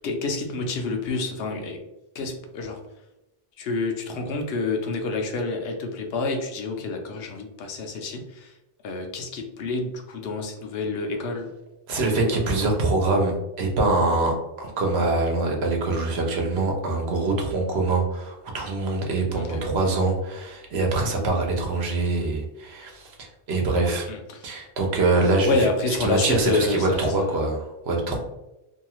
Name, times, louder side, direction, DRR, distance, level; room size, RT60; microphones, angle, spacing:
voice 1, 0.0-1.8 2.1-2.8 3.6-8.6 8.8-11.5 19.3-19.6 24.1-24.6 25.2-27.4, left 3 dB, 70° left, 4 dB, 0.8 m, -28 dB
voice 2, 11.9-24.1 24.4-25.5 26.0-28.2, right 2 dB, 80° right, 1 dB, 1.0 m, -24 dB
2.7 x 2.3 x 2.9 m, 0.95 s
omnidirectional pair, 1.1 m